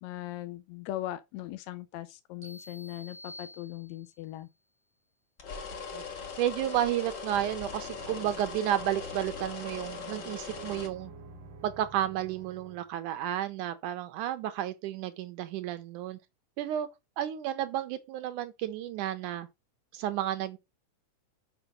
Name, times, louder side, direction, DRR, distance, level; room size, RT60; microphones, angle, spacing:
voice 1, 0.0-4.5, left 15 dB, 75° left, 1.7 m, -39 dB
sound 1, 2.4-4.3, left 1 dB, 15° right, 0.8 m, -49 dB
sound 2, 5.4-10.9, left 5 dB, 40° left, 1.9 m, -40 dB
voice 2, 5.7-6.0 6.4-11.1 11.6-16.2 16.6-16.9 17.2-19.5 19.9-20.6, right 12 dB, 75° right, 2.2 m, -32 dB
sound 3, 7.3-12.9, right 3 dB, 55° right, 1.4 m, -49 dB
7.1 x 5.4 x 5.0 m
omnidirectional pair, 3.7 m